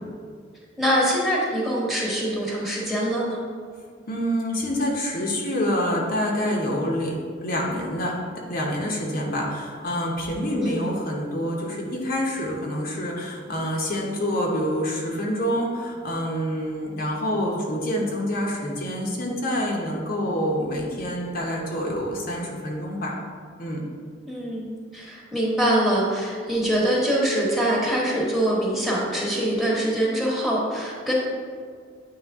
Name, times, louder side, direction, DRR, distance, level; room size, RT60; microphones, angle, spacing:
voice 1, 0.8-3.4 10.6-10.9 24.3-31.1, right 1 dB, ahead, -4 dB, 1.1 m, -24 dB
voice 2, 4.1-8.2 8.5-23.1 23.6-23.8, equal, 50° left, -2 dB, 0.8 m, -27 dB
8.8 x 3.1 x 3.5 m, 2.1 s
head